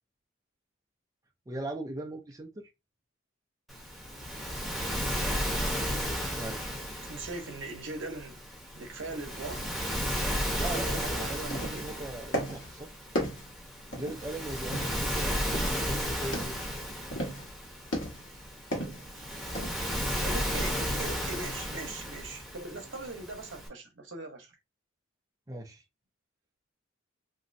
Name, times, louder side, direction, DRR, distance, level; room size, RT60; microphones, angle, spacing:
voice 1, 1.5-2.7 6.3-6.8 10.6-12.9 13.9-16.8 25.5-25.8, right 2 dB, 15° right, 0.4 m, -39 dB
Waves surf, 3.7-23.7, equal, ahead, 0.7 m, -34 dB
voice 2, 7.0-8.4 8.8-9.7 10.7-11.9 15.4-15.9 19.1-19.5 20.2-24.6, right 2 dB, 65° right, 0.8 m, -41 dB
sound 1, 11.5-11.9 12.3-12.7 13.1-14.3 14.7-15.1 15.5-15.9 16.2-16.7 17.1-17.5 17.9-18.4 18.7-19.1 19.5-19.8, equal, 65° left, 1.2 m, -35 dB
2.9 x 2.6 x 2.5 m
head